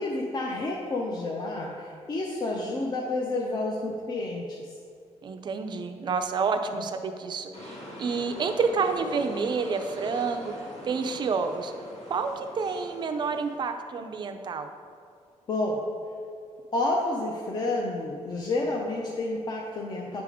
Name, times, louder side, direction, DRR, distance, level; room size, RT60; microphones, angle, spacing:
voice 1, 0.0-4.7 15.5-15.8 16.7-20.2, left 2 dB, 35° left, -2 dB, 0.5 m, -30 dB
voice 2, 5.2-10.5 10.8-11.7 12.1-14.7, right 5 dB, 40° right, 7 dB, 0.4 m, -29 dB
sound 1, 7.5-13.6, left 1 dB, 65° left, 1.8 m, -42 dB
8.9 x 3.5 x 4.8 m, 2.3 s
wide cardioid pair, 175°, 12 cm